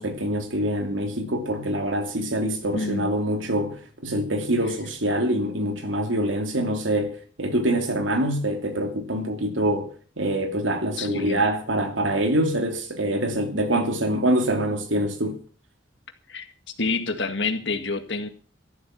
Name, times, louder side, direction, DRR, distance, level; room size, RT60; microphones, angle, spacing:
voice 1, 0.0-9.9 10.2-15.4, right 1 dB, 90° right, 2.8 m, -25 dB
voice 2, 2.7-3.1 11.0-11.5 16.3-16.5 16.8-18.3, left 3 dB, 70° left, 2.0 m, -28 dB
13.5 x 12.0 x 6.0 m
head